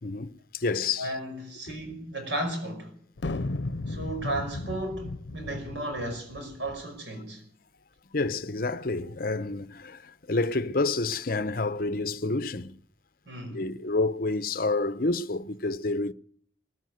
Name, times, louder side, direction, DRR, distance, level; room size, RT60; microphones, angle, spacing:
voice 1, 0.0-1.1 1.7-1.8 8.1-12.8 13.5-16.1, left 3 dB, 55° left, 0.9 m, -29 dB
voice 2, 1.0-2.9 3.9-7.4 13.3-13.6, right 1 dB, 85° right, 5.8 m, -34 dB
sound 1, 3.2-6.8, left 2 dB, 80° left, 0.8 m, -35 dB
21.0 x 14.5 x 9.3 m
head